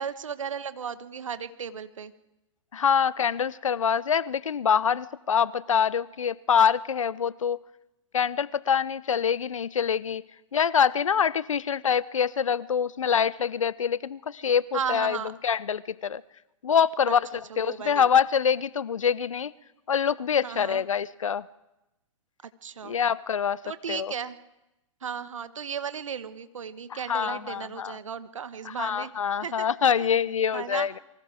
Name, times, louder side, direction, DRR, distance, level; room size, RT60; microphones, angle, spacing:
voice 1, 0.0-2.1 14.7-15.3 17.1-18.1 20.4-20.8 22.6-22.9 23.6-24.4 25.0-29.1 29.4-30.1 30.5-30.9, right 7 dB, 70° right, 12 dB, 1.3 m, -35 dB
voice 2, 2.7-7.6 8.1-10.2 10.5-15.2 15.4-16.2 16.6-17.3 17.6-19.5 19.9-21.5 22.8-23.6 23.9-24.1 26.9-28.0 28.6-31.0, left 7 dB, 70° left, 21 dB, 0.7 m, -25 dB
28.5 x 23.5 x 4.8 m, 0.93 s
figure-of-eight pair, 115°, 17 cm